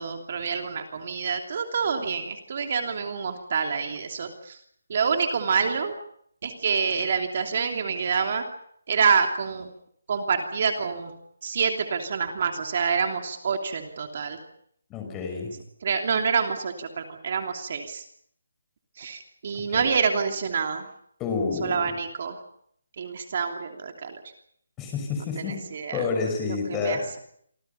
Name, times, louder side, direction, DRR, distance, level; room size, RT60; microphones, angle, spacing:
voice 1, 0.0-4.6 4.9-5.9 6.4-8.4 8.9-9.7 10.1-11.1 11.4-14.4 15.8-18.0 19.0-20.9 21.6-22.4 23.0-24.2 25.4-26.0 26.4-27.2, right 6 dB, 40° right, 4 dB, 3.0 m, -27 dB
voice 2, 14.9-15.5 19.7-19.9 21.2-21.9 24.8-25.6 25.9-27.0, left 4 dB, 10° left, 3 dB, 6.3 m, -29 dB
28.0 x 25.5 x 5.8 m, 0.67 s
hypercardioid pair, 170°, 0 cm